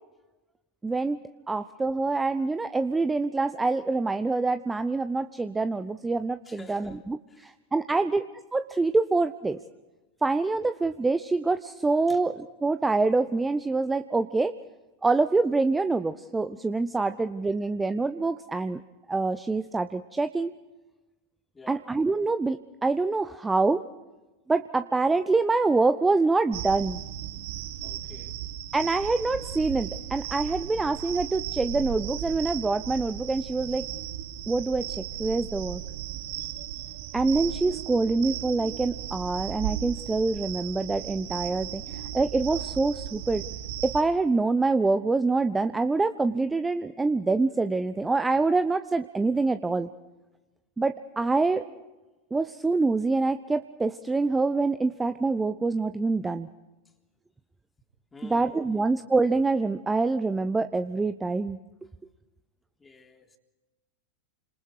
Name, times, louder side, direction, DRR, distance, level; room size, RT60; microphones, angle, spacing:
voice 1, 0.8-9.6 10.2-14.6 15.0-18.8 19.1-20.5 21.7-23.8 24.5-27.0 28.7-33.8 34.5-35.8 37.1-43.4 43.8-49.9 50.8-51.6 52.3-56.5 58.2-61.6, right 3 dB, 10° right, 0.7 m, -26 dB
voice 2, 6.5-7.5 7.9-8.1 12.1-12.2 17.6-17.7 21.5-21.9 27.8-28.4 58.1-59.0 62.8-63.4, left 4 dB, 15° left, 3.5 m, -50 dB
sound 1, 26.5-44.0, right 11 dB, 50° right, 1.5 m, -36 dB
30.0 x 26.5 x 4.8 m
figure-of-eight pair, 90°, 0 cm